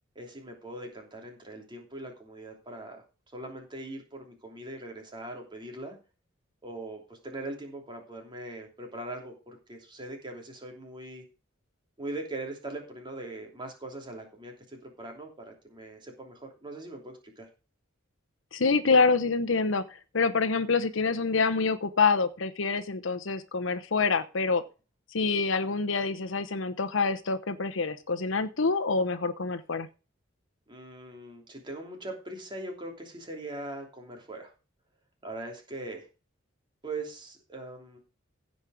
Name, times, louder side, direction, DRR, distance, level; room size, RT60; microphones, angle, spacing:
voice 1, 0.1-3.0 3.3-6.0 6.6-11.2 12.0-17.5 30.7-34.5 35.2-36.1 36.8-38.0, right 2 dB, 25° right, 2 dB, 3.0 m, -41 dB
voice 2, 18.5-19.8 20.1-24.6 25.1-29.9, left 4 dB, 70° left, 10 dB, 0.9 m, -26 dB
16.0 x 5.4 x 4.9 m, 0.33 s
head